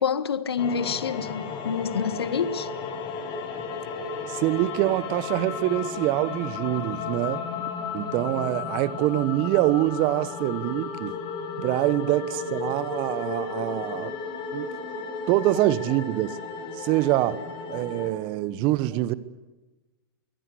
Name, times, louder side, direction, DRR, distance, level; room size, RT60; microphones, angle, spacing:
voice 1, 0.0-2.7 18.9-19.0, left 6 dB, 75° left, 1.5 m, -27 dB
sound 1, 0.6-18.1, left 5 dB, 40° left, 5.2 m, -34 dB
voice 2, 4.3-7.4 7.9-11.2 11.6-14.2 14.5-14.7 15.3-16.4 16.8-17.4 17.7-19.1, right 16 dB, 40° right, 1.2 m, -25 dB
23.5 x 17.0 x 8.4 m
hypercardioid pair, 110°, 13 cm